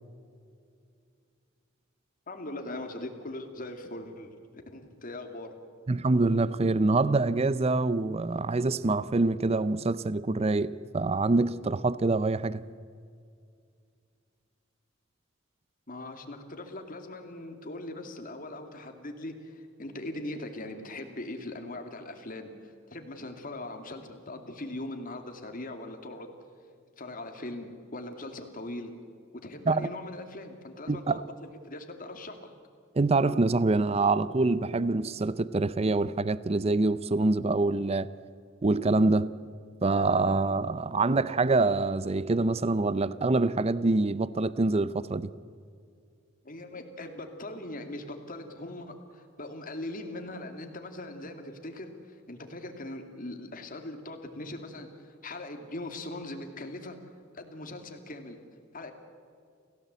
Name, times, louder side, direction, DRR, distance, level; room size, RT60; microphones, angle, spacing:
voice 1, 2.3-5.5 15.9-26.3 27.0-28.9 29.4-31.2 31.6-32.5 46.4-57.0 57.3-58.4 58.7-58.9, left 1 dB, 45° left, 2.5 m, -40 dB
voice 2, 5.9-12.6 29.7-29.9 30.9-31.2 33.0-38.1 38.6-39.3 39.8-45.3, right 3 dB, 30° right, 0.5 m, -25 dB
29.0 x 16.5 x 8.1 m
head